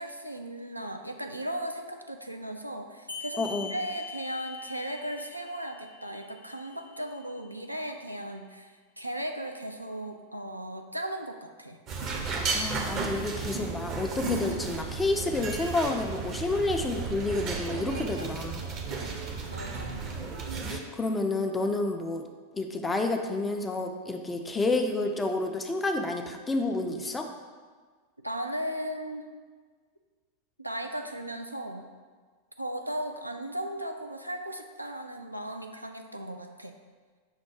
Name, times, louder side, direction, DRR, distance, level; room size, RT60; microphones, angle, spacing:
voice 1, 0.0-11.8 17.9-18.3 19.5-20.1 20.6-20.8 28.2-29.3 30.6-31.8 32.6-36.7, right 1 dB, 90° right, 4 dB, 0.3 m, -37 dB
sound 1, 3.1-8.1, left 5 dB, 85° left, 0.4 m, -44 dB
voice 2, 3.4-3.7 12.5-18.6 20.7-22.2 22.5-27.3, left 2 dB, 15° left, 4 dB, 0.4 m, -29 dB
sound 2, 11.9-20.8, right 4 dB, 35° right, 0.6 m, -33 dB
5.6 x 2.0 x 4.7 m, 1.5 s
figure-of-eight pair, 90°, 0 cm